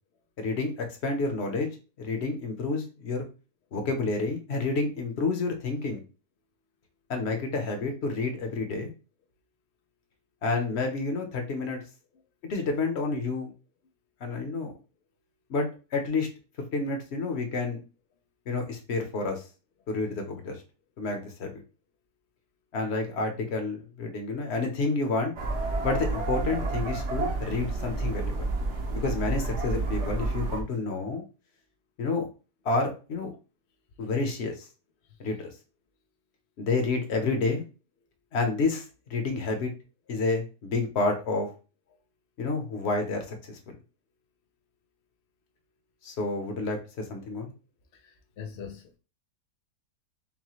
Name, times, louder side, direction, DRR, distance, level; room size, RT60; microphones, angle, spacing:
voice 1, 0.4-1.7 2.0-3.3 3.7-6.0 7.1-8.9 10.4-11.8 12.4-13.5 14.2-14.7 15.5-16.3 16.7-17.8 18.5-19.4 19.9-20.6 21.0-21.6 22.7-25.3 25.8-28.5 28.9-31.2 32.0-32.2 32.6-33.3 34.0-34.7 35.2-35.5 36.6-37.6 38.3-38.8 39.1-39.7 40.1-41.5 42.4-43.7 46.0-47.5, left 3 dB, 50° left, 0.9 m, -29 dB
sound 1, 25.4-30.6, right 3 dB, 50° right, 1.0 m, -30 dB
voice 2, 48.0-49.0, left 7 dB, 80° left, 0.6 m, -42 dB
5.6 x 2.2 x 3.0 m
omnidirectional pair, 1.8 m